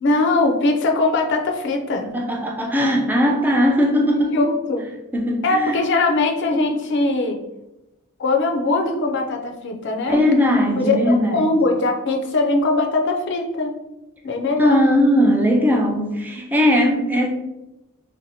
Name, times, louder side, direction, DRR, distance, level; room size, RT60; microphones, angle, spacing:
voice 1, 0.0-2.1 4.0-4.1 4.3-4.8 5.4-7.4 8.2-10.2 10.8-13.8 14.2-14.8, left 2 dB, 55° left, 3 dB, 0.5 m, -21 dB
voice 2, 2.1-4.3 5.1-5.8 10.1-11.5 14.6-17.3, left 1 dB, 10° right, 1 dB, 0.4 m, -18 dB
2.7 x 2.1 x 4.0 m, 0.93 s
head